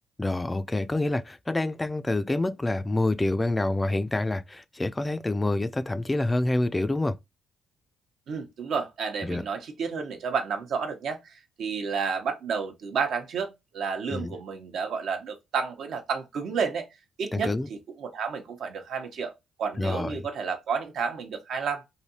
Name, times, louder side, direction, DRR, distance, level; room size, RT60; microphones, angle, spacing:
voice 1, 0.2-7.1 9.2-9.4 14.1-14.3 17.3-17.7 19.8-20.2, left 2 dB, 15° left, 0.3 m, -27 dB
voice 2, 8.3-16.9 17.2-19.3 19.6-21.8, right 5 dB, 70° right, 0.9 m, -31 dB
3.2 x 2.7 x 2.8 m
cardioid pair, 90°, 0 cm